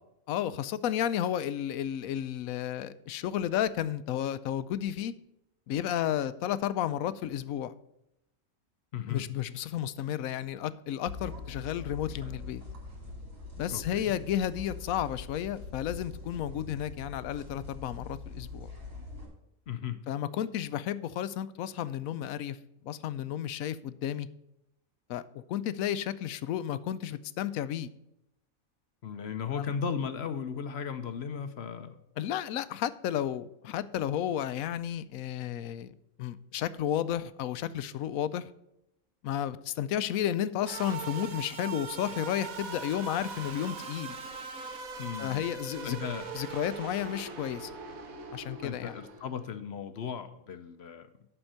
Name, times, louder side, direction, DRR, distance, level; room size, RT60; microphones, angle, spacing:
voice 1, 0.3-5.1 5.7-7.7 9.1-12.6 13.6-18.7 20.1-22.6 22.8-24.3 25.1-27.9 29.5-29.7 32.2-38.5 39.2-44.2 45.2-46.0 46.3-47.7 48.3-48.9, left 10 dB, 80° left, 15 dB, 1.0 m, -32 dB
voice 2, 8.9-9.2 13.7-14.2 19.7-20.0 29.0-32.0 45.0-45.4 45.8-46.3 48.6-51.1, left 7 dB, 55° left, 9 dB, 0.9 m, -36 dB
sound 1, 11.1-19.3, left 3 dB, 45° right, 4.4 m, -43 dB
sound 2, 40.7-49.5, right 5 dB, 85° right, 1.5 m, -41 dB
11.5 x 4.4 x 6.4 m, 0.83 s
omnidirectional pair, 1.4 m